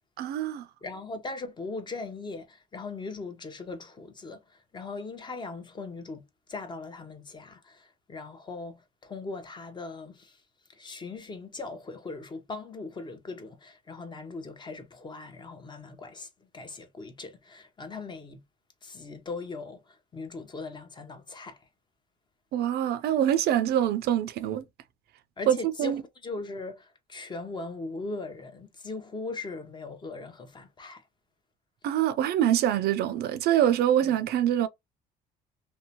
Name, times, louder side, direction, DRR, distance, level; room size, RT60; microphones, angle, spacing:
voice 1, 0.2-0.7 22.5-24.6 25.5-26.0 31.8-34.7, right 11 dB, 70° right, 0.5 m, -25 dB
voice 2, 0.8-10.4 10.7-16.3 16.5-18.4 18.8-21.6 25.4-26.0 26.2-31.0, left 3 dB, 25° left, 0.8 m, -39 dB
2.7 x 2.1 x 2.8 m
cardioid pair, 110°, 17 cm